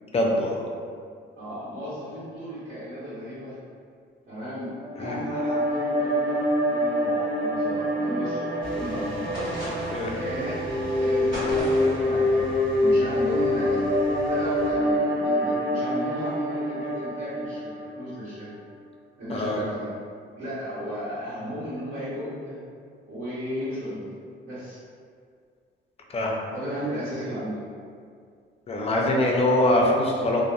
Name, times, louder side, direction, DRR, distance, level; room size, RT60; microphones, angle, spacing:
voice 1, 0.1-0.6 5.0-5.2 9.9-10.1 19.3-19.6 26.1-26.4 28.7-30.4, left 1 dB, 30° left, -1 dB, 0.4 m, -23 dB
voice 2, 1.4-3.6 4.3-4.7 5.0-9.4 10.2-10.6 11.0-18.5 19.2-19.9 20.4-22.6 23.1-24.0 24.4-24.8 26.5-27.6, equal, 65° right, -14 dB, 1.0 m, -35 dB
sound 1, 4.7-18.1, left 1 dB, 25° right, 0.7 m, -26 dB
sound 2, 8.6-14.7, right 1 dB, 90° right, 0.6 m, -41 dB
sound 3, 9.3-10.1 11.3-12.0, equal, 45° right, 1.5 m, -34 dB
2.6 x 2.1 x 2.3 m, 2.2 s
cardioid pair, 90°, 20 cm